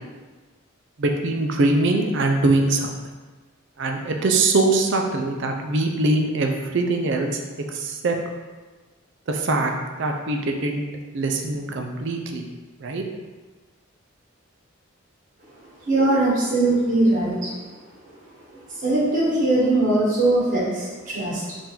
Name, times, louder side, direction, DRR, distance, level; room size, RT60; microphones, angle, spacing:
voice 1, 1.0-3.0 3.8-7.4 7.7-8.2 9.3-9.7 10.0-10.8 11.1-12.5 12.8-13.0, right 2 dB, 55° right, 3 dB, 0.5 m, -22 dB
voice 2, 15.8-17.5 18.5-21.6, right 2 dB, 40° right, -7 dB, 1.4 m, -21 dB
3.7 x 2.6 x 4.3 m, 1.3 s
head